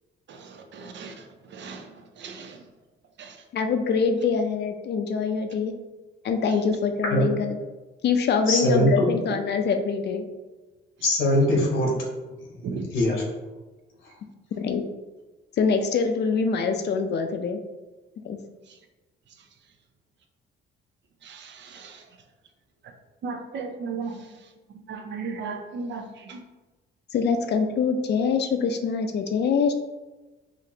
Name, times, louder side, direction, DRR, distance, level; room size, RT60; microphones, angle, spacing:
voice 1, 0.3-2.6 3.2-3.4 12.6-12.8 21.2-22.0 23.2-24.3 24.7-26.4, right 4 dB, 65° right, 4 dB, 0.6 m, -36 dB
voice 2, 3.5-5.7 6.2-7.6 8.0-10.2 14.6-14.8 15.6-17.6 18.2-18.4 27.1-29.7, left 5 dB, 60° left, 6 dB, 0.5 m, -24 dB
voice 3, 8.5-9.1 11.0-12.1 12.4-12.6 12.9-13.2 14.0-14.1, left 1 dB, 85° left, -1 dB, 1.1 m, -22 dB
5.1 x 2.5 x 2.8 m, 1.2 s
cardioid pair, 90°, 20 cm